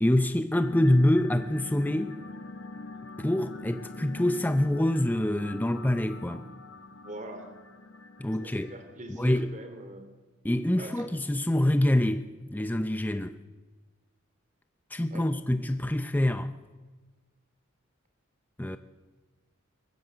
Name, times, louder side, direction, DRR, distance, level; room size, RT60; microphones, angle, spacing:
voice 1, 0.0-2.2 3.2-6.4 8.2-8.7 9.2-9.5 10.4-13.4 14.9-16.6 18.6-18.8, left 1 dB, 10° left, 0.6 m, -26 dB
sound 1, 0.5-8.9, left 3 dB, 75° left, 1.6 m, -44 dB
voice 2, 7.0-7.5 8.4-10.1 10.8-11.1 15.1-15.3, right 1 dB, 35° right, 3.1 m, -43 dB
22.5 x 20.0 x 7.9 m
head